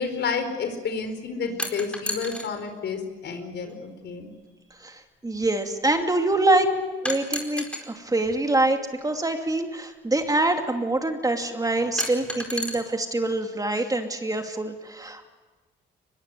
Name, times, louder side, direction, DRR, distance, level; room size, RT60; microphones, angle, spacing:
voice 1, 0.0-4.3 6.1-6.9, left 5 dB, 60° left, 7 dB, 4.8 m, -30 dB
sound 1, 1.6-2.5 3.7-3.8 7.1-7.9 9.3-9.4 12.0-12.8, left 1 dB, 5° left, 4.5 m, -31 dB
voice 2, 4.8-6.7 7.0-15.3, right 2 dB, 15° right, 5 dB, 2.6 m, -25 dB
23.5 x 21.5 x 9.4 m, 1.3 s
cardioid pair, 90°, 20 cm